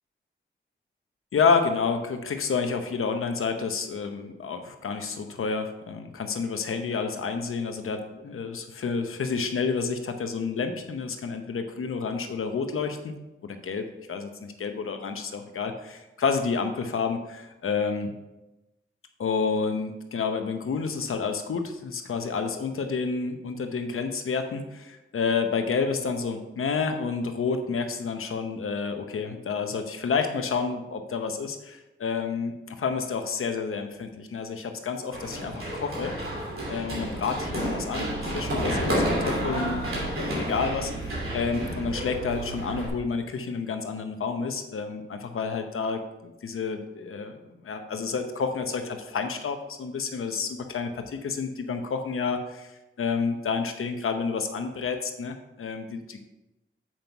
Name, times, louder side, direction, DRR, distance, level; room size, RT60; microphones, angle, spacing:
voice 1, 1.3-13.1 13.4-18.1 19.2-36.1 36.7-52.7 53.0-56.2, left 5 dB, 85° left, 6 dB, 0.8 m, -29 dB
Run, 35.1-42.9, right 1 dB, 80° right, 2.8 m, -30 dB
7.6 x 5.4 x 4.5 m, 1.0 s
cardioid pair, 65°, 21 cm